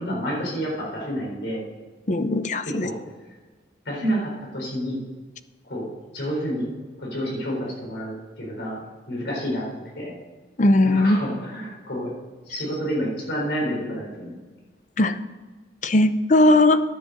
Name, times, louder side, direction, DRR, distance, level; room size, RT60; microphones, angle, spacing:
voice 1, 0.0-1.6 2.6-2.9 3.9-5.0 5.6-5.9 6.1-6.7 7.0-8.8 9.1-10.1 10.8-12.1 12.5-14.4, equal, 75° left, -3 dB, 4.2 m, -29 dB
voice 2, 2.1-2.9 10.6-11.2 15.0-15.3 15.8-16.8, left 1 dB, 45° left, 11 dB, 0.6 m, -18 dB
11.0 x 7.9 x 6.6 m, 1.3 s
head